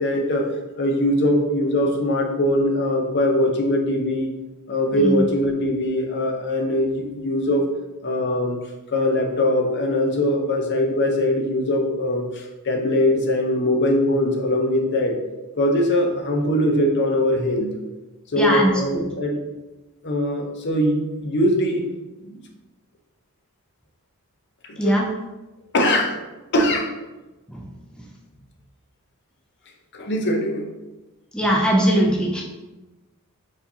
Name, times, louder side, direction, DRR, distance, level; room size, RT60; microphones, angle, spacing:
voice 1, 0.0-4.3 4.7-7.6 8.0-8.6 8.9-15.2 15.6-17.8 18.3-19.4 20.0-21.9 22.2-22.4 24.7-25.0 25.7-26.2 26.5-26.9 29.9-30.7, left 1 dB, 50° left, 2 dB, 0.7 m, -21 dB
voice 2, 4.9-5.2 18.4-19.1 24.8-25.1 27.5-27.6 31.3-32.4, equal, 5° left, -2 dB, 0.4 m, -20 dB
4.6 x 4.1 x 2.8 m, 1.1 s
head